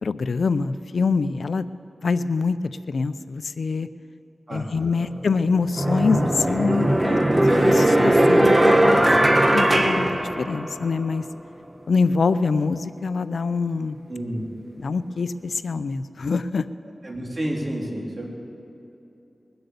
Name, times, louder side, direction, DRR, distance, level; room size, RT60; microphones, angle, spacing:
voice 1, 0.0-1.7 2.0-3.9 4.5-7.2 7.6-9.1 9.5-10.1 10.4-11.2 11.9-14.0 14.8-16.7, left 4 dB, 90° left, 13 dB, 0.4 m, -24 dB
voice 2, 4.5-5.1 14.1-14.5 17.0-18.3, right 1 dB, 45° right, -2 dB, 3.3 m, -30 dB
sound 1, 5.0-5.1 5.7-10.9, right 1 dB, 30° right, 1.5 m, -19 dB
21.5 x 7.9 x 6.8 m, 2.9 s
cardioid pair, 45°, 0 cm